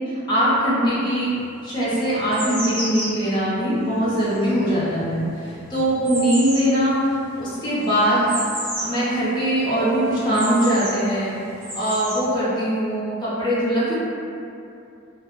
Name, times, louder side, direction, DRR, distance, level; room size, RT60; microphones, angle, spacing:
voice 1, 0.3-1.3 1.6-8.3 8.8-11.3 11.7-14.0, equal, 20° left, -10 dB, 0.6 m, -21 dB
sound 1, 1.2-1.3 1.9-9.1 9.4-9.5 9.8-11.0 11.5-12.3, right 1 dB, 15° right, 0.7 m, -32 dB
2.3 x 2.0 x 3.0 m, 2.7 s
head